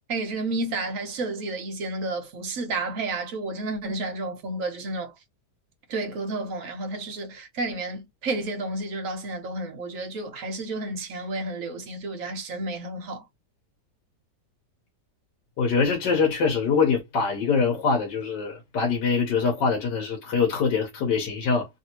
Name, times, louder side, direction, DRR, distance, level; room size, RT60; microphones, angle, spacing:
voice 1, 0.1-5.1 5.9-13.2, right 2 dB, 60° right, 1.1 m, -31 dB
voice 2, 15.6-21.7, left 5 dB, 90° left, 1.5 m, -24 dB
3.1 x 2.7 x 2.8 m
omnidirectional pair, 1.8 m